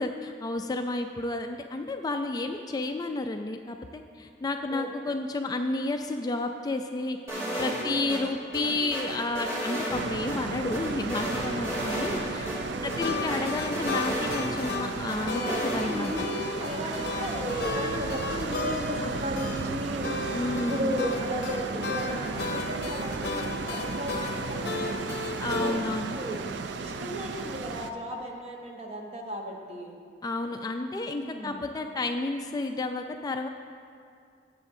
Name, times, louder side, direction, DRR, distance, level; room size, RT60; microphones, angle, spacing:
voice 1, 0.0-12.5 12.8-16.3 20.3-21.0 25.4-26.2 30.2-33.5, left 2 dB, 20° left, 5 dB, 0.3 m, -31 dB
voice 2, 4.7-5.1 7.8-8.3 12.7-13.3 15.2-20.1 20.5-25.2 25.6-26.4 26.8-30.0 31.2-31.6, equal, 35° right, 1 dB, 1.0 m, -35 dB
sound 1, 7.3-8.2 8.5-10.4 10.7-12.2 12.5-12.6 12.9-14.7 15.1-15.8, equal, 15° right, 2.2 m, -33 dB
sound 2, 10.0-27.9, right 4 dB, 80° right, 0.4 m, -34 dB
sound 3, 13.0-25.8, left 3 dB, 65° left, 0.6 m, -35 dB
17.0 x 7.0 x 2.7 m, 2.3 s
head